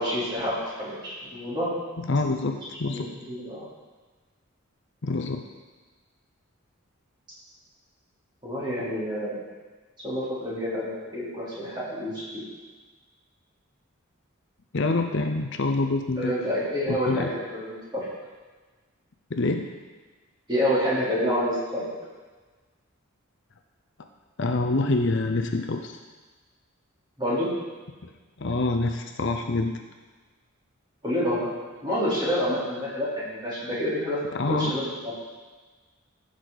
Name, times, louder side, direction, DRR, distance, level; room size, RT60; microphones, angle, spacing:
voice 1, 0.0-1.7 2.9-3.7 8.4-9.4 10.0-12.4 16.2-18.1 20.5-21.9 27.2-27.5 31.0-31.5 31.8-34.2 34.5-35.1, equal, 20° right, -9 dB, 3.8 m, -28 dB
voice 2, 2.0-3.1 5.0-5.4 14.7-16.3 16.9-17.3 19.3-19.7 24.4-26.0 28.4-29.7 34.3-34.7, left 2 dB, 55° left, 5 dB, 0.7 m, -26 dB
15.0 x 6.5 x 4.1 m, 1.3 s
head